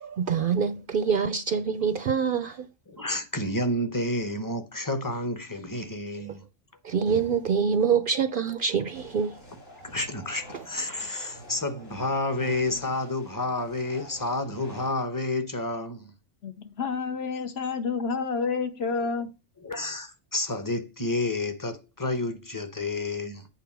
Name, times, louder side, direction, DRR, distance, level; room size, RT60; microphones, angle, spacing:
voice 1, 0.0-2.7 6.8-9.4, right 6 dB, 60° right, 0.6 m, -25 dB
voice 2, 2.9-6.4 9.8-16.1 19.6-23.4, left 2 dB, 20° left, 0.8 m, -30 dB
sound 1, 8.9-14.9, equal, 85° left, 3.9 m, -46 dB
voice 3, 16.4-19.3, left 5 dB, 65° left, 1.0 m, -29 dB
8.3 x 3.7 x 6.0 m
omnidirectional pair, 1.2 m